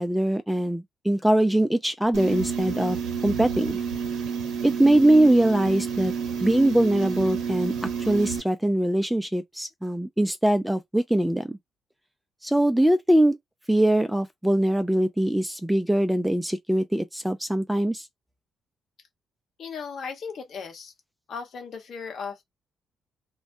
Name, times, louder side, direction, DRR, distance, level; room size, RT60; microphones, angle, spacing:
voice 1, 0.0-3.0 3.2-3.8 4.6-6.1 6.4-11.6 12.4-13.4 13.7-18.0, right 1 dB, 5° right, 0.4 m, -22 dB
sound 1, 2.1-8.4, right 6 dB, 80° right, 0.8 m, -30 dB
voice 2, 19.6-20.9 21.3-22.4, left 5 dB, 60° left, 1.0 m, -36 dB
2.3 x 2.1 x 2.6 m
cardioid pair, 90°, 0 cm